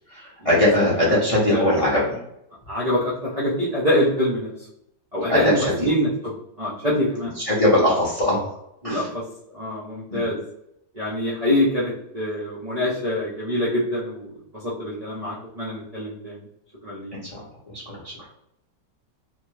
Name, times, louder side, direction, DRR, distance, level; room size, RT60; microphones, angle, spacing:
voice 1, 0.1-2.2 5.3-5.9 7.4-8.5 8.8-9.1 10.1-10.2 17.1-18.1, left 1 dB, 55° left, -5 dB, 0.3 m, -21 dB
voice 2, 0.8-1.7 2.7-4.7 5.1-6.1 6.6-7.3 8.8-9.2 9.5-10.4 10.9-16.5 16.8-17.1, left 1 dB, 80° right, -7 dB, 0.3 m, -25 dB
2.9 x 2.2 x 3.1 m, 0.80 s
omnidirectional pair, 1.9 m